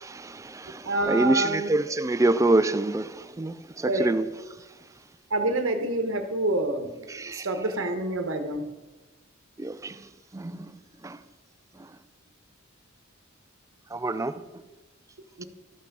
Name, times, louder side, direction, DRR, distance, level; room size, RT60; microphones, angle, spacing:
voice 1, 0.0-4.3 7.1-7.5 9.6-10.0 10.3-10.7 11.0-11.2 13.9-14.4, right 2 dB, 15° right, 0.4 m, -26 dB
voice 2, 0.8-1.7 3.8-4.1 5.3-8.7 15.4-15.5, right 2 dB, 70° right, 1.0 m, -27 dB
13.0 x 5.8 x 5.4 m
head